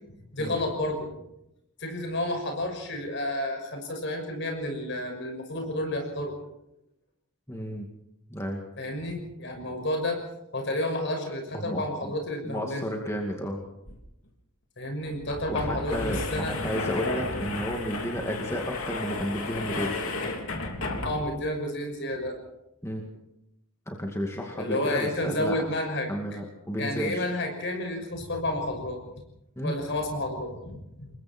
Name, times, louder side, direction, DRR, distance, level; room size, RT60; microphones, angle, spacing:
voice 1, 0.3-1.1 1.8-6.3 8.8-10.2 10.5-12.9 14.8-16.6 21.0-22.4 24.6-26.1 26.8-29.0 29.6-31.1, left 1 dB, 55° left, 4 dB, 6.1 m, -31 dB
voice 2, 7.5-7.9 8.3-8.6 11.5-12.1 12.4-13.6 15.5-20.0 22.8-23.0 23.9-25.7 26.1-27.3 29.6-29.8, equal, 15° left, 1 dB, 2.3 m, -32 dB
sound 1, 13.8-13.9 14.2-14.3 15.0-21.5, left 2 dB, 90° left, 3.2 m, -33 dB
28.0 x 21.5 x 4.5 m, 0.85 s
head